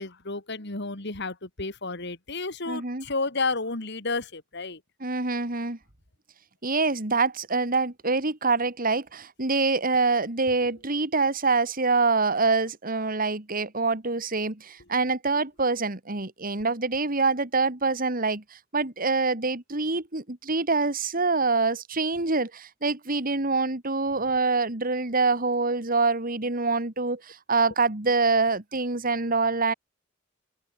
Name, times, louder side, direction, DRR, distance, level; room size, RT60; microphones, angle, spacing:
voice 1, 0.0-4.8 10.6-10.7 14.8-14.9, left 3 dB, 60° left, 3.2 m, -31 dB
voice 2, 2.7-3.0 5.0-5.8 6.6-18.4 18.7-29.7, right 3 dB, 45° right, 2.7 m, -25 dB
head